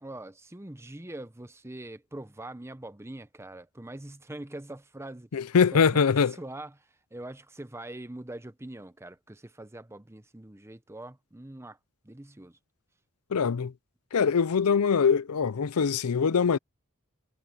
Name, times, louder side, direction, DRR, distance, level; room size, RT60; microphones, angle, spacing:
voice 1, 0.0-5.4 5.7-6.0 6.3-11.8 12.0-12.6, right 1 dB, 10° right, 0.8 m, -43 dB
voice 2, 5.3-6.3 13.3-13.7 14.1-16.6, left 6 dB, 80° left, 0.5 m, -23 dB
head